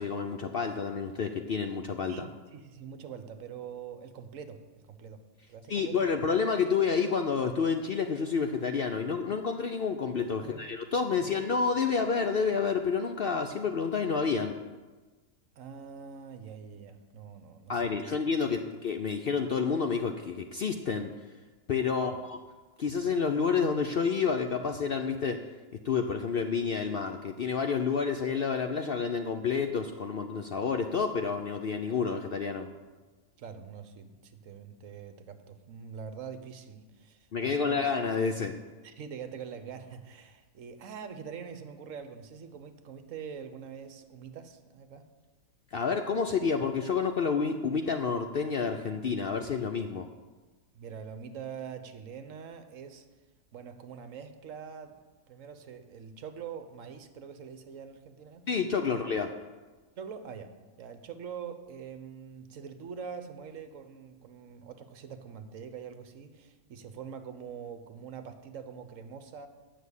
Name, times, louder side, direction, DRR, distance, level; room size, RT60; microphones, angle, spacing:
voice 1, 0.0-2.3 5.7-14.5 17.7-21.1 21.7-22.4 22.8-25.4 25.8-32.7 37.3-38.5 45.7-50.1 58.5-59.3, left 5 dB, 60° left, 6 dB, 0.6 m, -29 dB
voice 2, 2.1-5.2 5.5-6.0 10.4-10.9 11.2-11.4 15.6-18.2 22.0-22.2 33.4-37.8 38.8-45.0 50.7-53.0 53.5-54.9 55.3-58.4 58.9-59.0 60.0-69.5, right 7 dB, 60° right, 9 dB, 1.2 m, -44 dB
9.3 x 6.2 x 8.1 m, 1.3 s
omnidirectional pair, 1.6 m